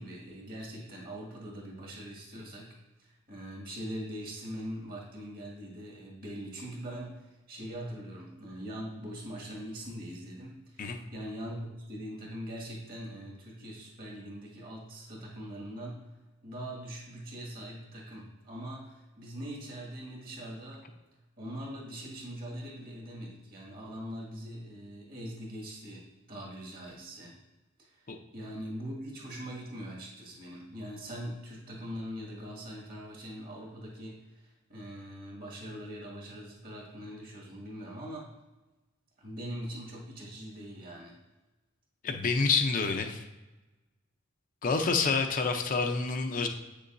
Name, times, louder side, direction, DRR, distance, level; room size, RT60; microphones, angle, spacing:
voice 1, 0.0-16.1 16.4-20.9 21.4-27.4 27.8-28.0 28.3-38.3 39.2-41.2, equal, 45° right, -2 dB, 1.8 m, -42 dB
voice 2, 42.0-43.2 44.6-46.5, left 4 dB, 40° left, 4 dB, 0.5 m, -28 dB
8.1 x 6.7 x 2.6 m, 1.1 s
head